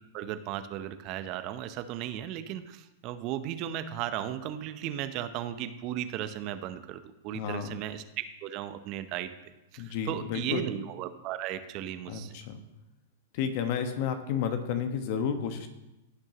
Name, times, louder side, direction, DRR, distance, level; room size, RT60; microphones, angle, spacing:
voice 1, 0.1-8.0 8.4-12.4, right 11 dB, 45° right, 10 dB, 0.8 m, -36 dB
voice 2, 7.3-7.7 9.8-10.6 12.1-12.6 13.3-15.7, left 7 dB, 55° left, 7 dB, 1.3 m, -31 dB
17.0 x 6.2 x 3.0 m, 0.96 s
hypercardioid pair, 110°, 0 cm